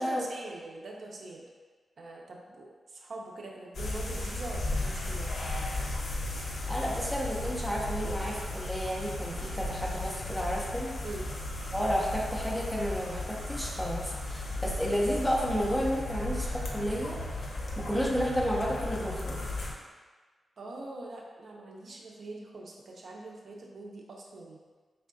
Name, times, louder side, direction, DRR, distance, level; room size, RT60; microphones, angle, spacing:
voice 1, 0.0-1.4 2.0-5.3 11.0-11.3 20.6-24.6, right 2 dB, 60° right, -1 dB, 0.5 m, -43 dB
sound 1, 3.7-19.7, left 2 dB, 70° left, 0.7 m, -35 dB
voice 2, 6.7-10.9 11.7-17.5 17.8-19.5, equal, 5° left, -4 dB, 0.6 m, -31 dB
4.4 x 3.3 x 2.6 m, 1.4 s
wide cardioid pair, 155°, 0 cm